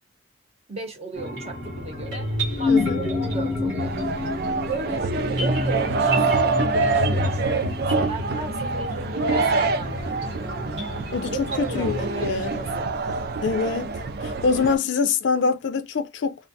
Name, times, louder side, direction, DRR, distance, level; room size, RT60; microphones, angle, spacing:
voice 1, 0.7-2.3 2.6-4.0 4.6-10.6 11.3-12.9, right 3 dB, 35° right, 0.8 m, -35 dB
sound 1, 1.2-13.3, left 2 dB, 70° right, 1.2 m, -29 dB
voice 2, 2.7-3.0 11.1-12.5 13.4-13.9 14.2-16.4, left 5 dB, 75° left, 0.4 m, -24 dB
sound 2, 3.8-14.8, right 4 dB, 55° right, 0.4 m, -26 dB
2.3 x 2.1 x 2.6 m
head